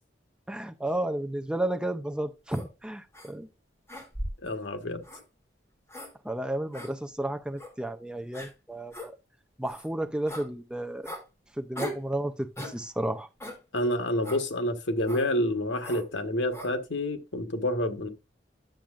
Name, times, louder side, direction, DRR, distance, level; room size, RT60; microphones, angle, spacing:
voice 1, 0.5-3.5 6.2-9.1 9.6-11.1 11.6-13.3, right 1 dB, 5° right, 0.5 m, -32 dB
sound 1, 2.5-2.7 3.1-3.3 3.9-4.5 5.0-5.2 5.9-6.1 6.7-6.9 7.6-7.7 8.3-8.5 8.9-9.1 9.6-9.9 10.3-10.5 11.0-11.2 11.8-12.1 12.6-12.8 13.4-13.6 14.2-14.4 15.1-15.3 15.8-16.1 16.5-16.7, equal, 15° left, 2.5 m, -38 dB
voice 2, 4.4-5.0 13.7-18.1, left 1 dB, 90° left, 1.2 m, -28 dB
10.5 x 7.2 x 2.4 m
head